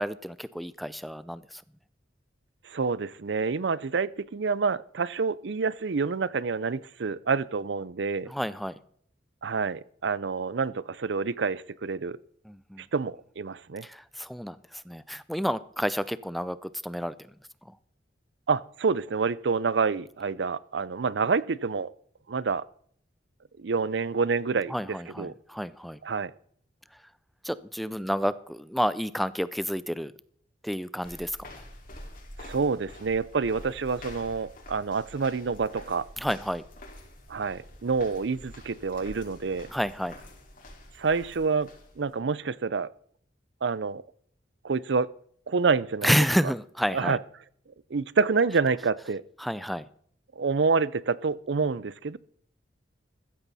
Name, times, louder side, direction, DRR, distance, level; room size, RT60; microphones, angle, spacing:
voice 1, 0.0-1.6 8.3-8.8 12.5-12.8 13.8-17.1 24.7-26.0 27.4-30.1 30.6-31.4 36.2-36.6 39.7-40.2 46.0-47.2 49.4-49.8, equal, ahead, 0.4 m, -30 dB
voice 2, 2.6-8.3 9.4-12.2 12.8-13.9 18.5-21.9 22.3-22.7 23.6-25.3 26.0-26.3 32.4-36.1 37.3-39.7 41.0-41.7 42.0-42.9 43.6-44.0 44.6-45.1 45.5-46.1 46.9-47.2 47.9-49.2 50.4-52.2, right 4 dB, 70° right, 0.5 m, -27 dB
sound 1, 31.0-42.2, left 1 dB, 50° left, 4.6 m, -47 dB
15.0 x 13.5 x 4.2 m
head